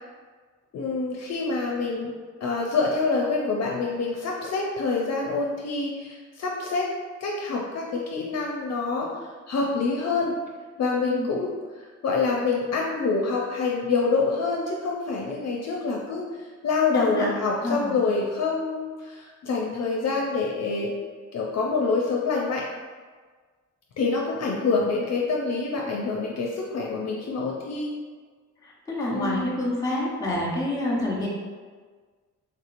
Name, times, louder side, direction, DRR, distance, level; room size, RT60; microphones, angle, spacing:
voice 1, 0.7-2.1 2.4-6.9 7.2-10.3 10.8-20.9 21.3-22.6 24.0-27.9 29.1-29.5, left 4 dB, 55° left, -1 dB, 0.4 m, -26 dB
voice 2, 16.9-17.3 17.6-17.9 28.9-31.3, left 1 dB, 10° left, -5 dB, 1.0 m, -27 dB
3.3 x 2.8 x 2.5 m, 1.5 s
cardioid pair, 80°, 31 cm